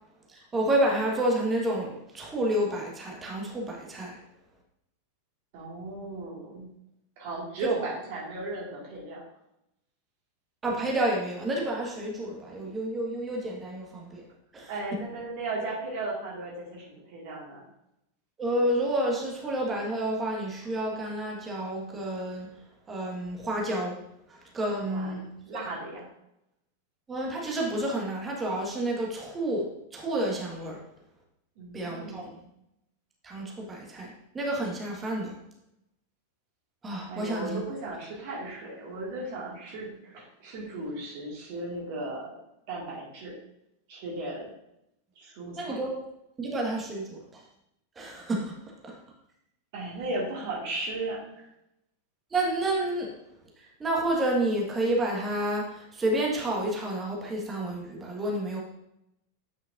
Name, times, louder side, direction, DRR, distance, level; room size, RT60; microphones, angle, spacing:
voice 1, 0.3-4.2 7.6-7.7 10.6-14.2 14.5-14.7 18.4-22.5 22.9-24.0 24.3-25.3 25.5-25.6 27.1-29.7 29.9-30.8 31.7-32.3 33.2-35.3 36.8-37.6 45.5-45.9 46.4-47.4 47.9-48.5 48.8-49.0 52.3-53.1 53.6-58.6, right 1 dB, 15° right, -1 dB, 1.5 m, -30 dB
voice 2, 5.5-6.7 7.2-9.2 14.7-17.6 24.9-26.1 31.6-32.4 37.1-42.4 42.7-43.3 43.9-44.5 45.2-45.8 49.7-51.4, right 2 dB, 50° right, -4 dB, 2.1 m, -36 dB
8.4 x 5.7 x 2.6 m, 0.83 s
figure-of-eight pair, 90°, 0 cm